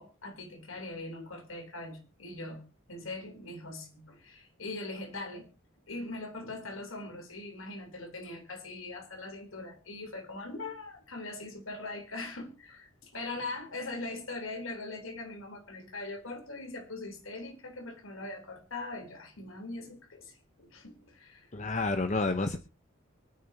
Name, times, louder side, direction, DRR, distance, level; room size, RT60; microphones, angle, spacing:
voice 1, 0.0-2.6 2.9-5.5 5.9-21.5, left 2 dB, 85° left, 5 dB, 3.7 m, -41 dB
voice 2, 21.5-22.6, left 3 dB, 35° left, 8 dB, 0.9 m, -29 dB
24.0 x 10.0 x 2.8 m, 0.30 s
head